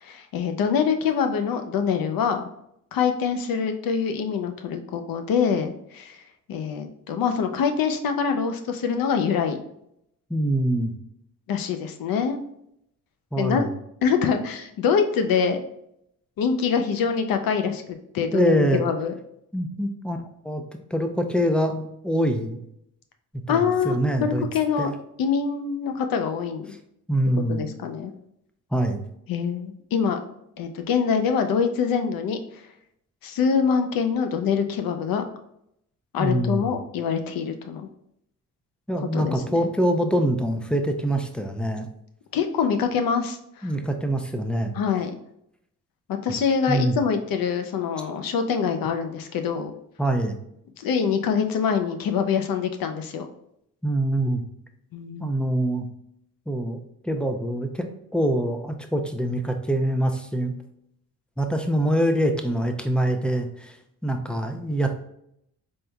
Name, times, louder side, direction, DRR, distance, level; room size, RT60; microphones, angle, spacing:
voice 1, 0.0-2.5 2.9-6.2 6.5-9.6 11.5-12.4 13.4-13.7 14.0-15.6 16.4-17.8 18.1-19.1 23.5-24.9 25.2-26.7 27.5-28.1 29.3-30.2 30.6-32.4 33.2-35.2 36.1-37.9 39.1-39.7 42.3-43.7 44.8-45.1 46.2-49.7 50.8-53.3 54.9-55.3, left 6 dB, 90° left, 7 dB, 0.6 m, -24 dB
voice 2, 10.3-10.9 13.3-13.7 18.3-18.8 19.5-20.2 20.4-22.6 23.5-24.5 24.8-24.9 27.1-27.7 28.7-29.0 36.2-36.7 38.9-41.9 43.6-44.8 46.7-47.0 50.0-50.4 53.8-54.4 55.2-55.9 56.5-56.8 57.0-57.9 58.1-60.5 61.4-63.8 64.0-64.9, right 1 dB, 5° left, 5 dB, 0.5 m, -24 dB
4.0 x 3.6 x 2.3 m, 0.76 s
cardioid pair, 85°, 34 cm